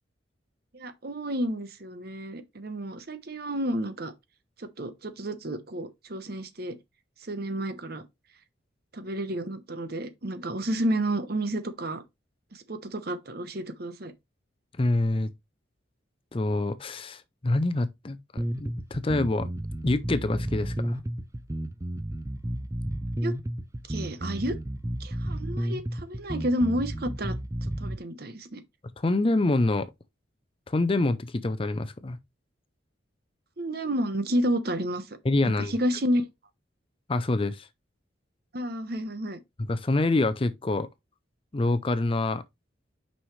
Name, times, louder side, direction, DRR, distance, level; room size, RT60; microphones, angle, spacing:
voice 1, 0.7-4.1 4.6-6.8 7.2-8.0 8.9-12.0 12.5-14.1 23.2-23.3 23.9-24.6 25.0-27.3 27.8-28.6 33.6-35.0 35.7-36.3 38.5-39.4, right 1 dB, 50° right, 1.0 m, -30 dB
voice 2, 14.8-15.3 16.3-19.5 19.8-21.0 29.0-29.9 30.7-32.2 35.2-35.7 37.1-37.7 39.7-40.9 41.5-42.4, left 2 dB, 30° left, 0.5 m, -26 dB
sound 1, 18.4-28.0, right 1 dB, 15° right, 0.5 m, -32 dB
5.9 x 5.5 x 3.2 m
head